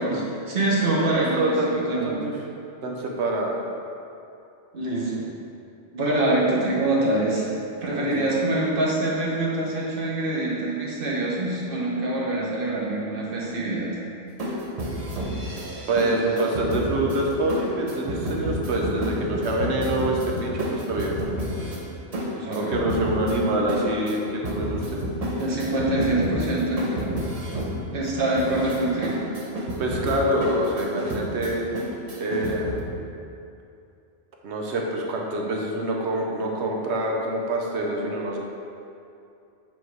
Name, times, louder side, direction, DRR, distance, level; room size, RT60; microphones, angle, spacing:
voice 1, 0.0-2.1 4.7-5.2 5.9-7.5 7.8-13.9 22.3-22.8 25.4-27.1 27.9-29.2, right 2 dB, 55° right, -5 dB, 1.3 m, -25 dB
voice 2, 1.0-2.4 2.8-3.6 7.8-8.4 15.9-21.2 22.5-25.0 29.8-31.9 32.2-32.8 34.4-38.4, right 1 dB, 90° right, -1 dB, 1.1 m, -26 dB
sound 1, 14.3-32.8, equal, 40° right, 0.8 m, -31 dB
7.6 x 3.1 x 4.6 m, 2.6 s
omnidirectional pair, 1.1 m